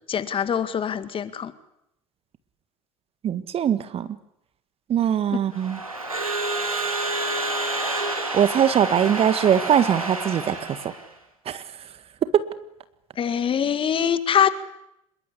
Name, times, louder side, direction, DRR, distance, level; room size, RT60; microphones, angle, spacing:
voice 1, 0.1-1.5 13.2-14.5, left 8 dB, 30° left, 13 dB, 2.0 m, -23 dB
voice 2, 3.2-4.1 4.9-5.8 8.3-10.6 11.5-11.6, right 9 dB, 35° right, 14 dB, 1.7 m, -21 dB
Crowd / Alarm, 5.5-11.1, right 2 dB, 90° right, 3.3 m, -28 dB
26.5 x 22.5 x 8.4 m, 0.79 s
figure-of-eight pair, 75°, 17 cm